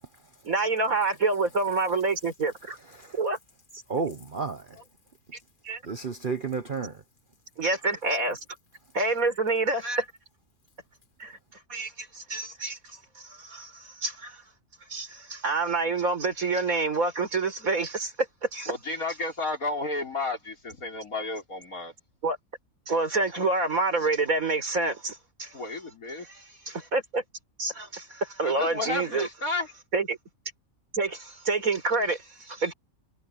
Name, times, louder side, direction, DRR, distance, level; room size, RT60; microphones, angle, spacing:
voice 1, 0.4-2.8 3.1-3.4 5.3-5.4 5.6-5.8 7.6-8.4 8.9-10.1 11.2-11.4 11.7-14.4 14.9-18.7 22.2-22.4 22.9-25.6 26.2-27.2 27.6-29.3 29.9-30.2 30.9-32.7, right 3 dB, 70° right, 4.8 m, -28 dB
voice 2, 3.9-4.8 5.8-7.0, right 5 dB, 40° right, 1.1 m, -31 dB
voice 3, 18.7-21.9 25.5-26.3 28.4-29.7, left 2 dB, 70° left, 5.0 m, -32 dB
omnidirectional pair, 1.5 m